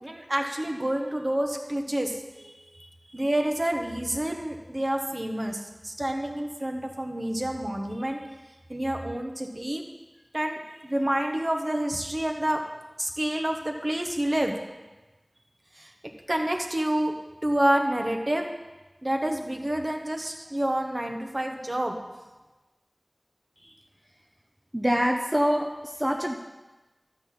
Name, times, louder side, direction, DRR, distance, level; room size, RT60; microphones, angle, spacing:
voice 1, 0.0-2.5 2.8-8.2 8.7-9.8 10.3-12.6 13.0-14.6 15.8-15.9 16.3-17.1 17.4-18.5 19.0-22.0, right 1 dB, 45° right, 2 dB, 1.2 m, -28 dB
voice 2, 24.7-26.4, equal, 15° right, 2 dB, 0.8 m, -25 dB
12.5 x 4.3 x 7.5 m, 1.1 s
wide cardioid pair, 40°, 0 cm